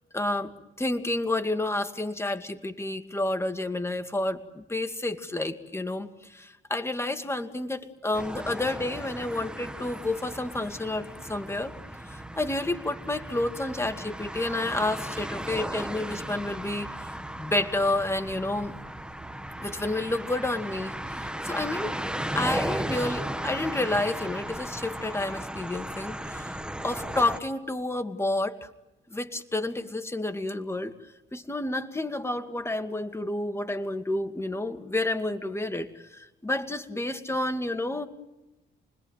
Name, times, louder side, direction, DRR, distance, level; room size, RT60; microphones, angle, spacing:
voice 1, 0.1-0.5 0.8-11.7 12.1-16.9 17.4-18.7 19.6-21.9 22.3-26.6 26.8-28.7 29.1-30.9 31.3-38.1, left 2 dB, 15° left, 7 dB, 2.3 m, -30 dB
sound 1, 8.1-27.4, right 1 dB, 5° right, 1.4 m, -36 dB
29.5 x 21.0 x 9.3 m, 1.0 s
cardioid pair, 90°, 20 cm